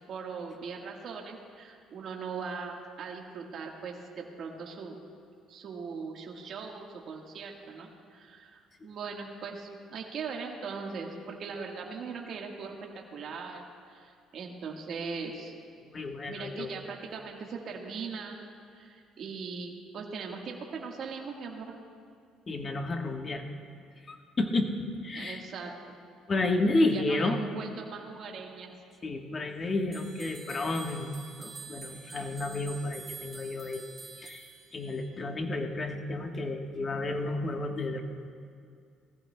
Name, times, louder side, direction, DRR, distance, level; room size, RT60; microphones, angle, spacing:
voice 1, 0.0-5.0 5.5-15.5 16.3-21.8 25.1-25.7 26.9-28.7, right 5 dB, 55° right, 0 dB, 1.4 m, -40 dB
voice 2, 15.8-16.8 22.5-23.4 24.1-25.4 26.3-27.4 29.0-33.9 34.2-38.0, left 2 dB, 35° left, 4 dB, 1.2 m, -31 dB
sound 1, 29.9-35.1, right 5 dB, 35° right, 2.6 m, -47 dB
19.5 x 15.0 x 2.2 m, 2.3 s
cardioid pair, 95°, 0 cm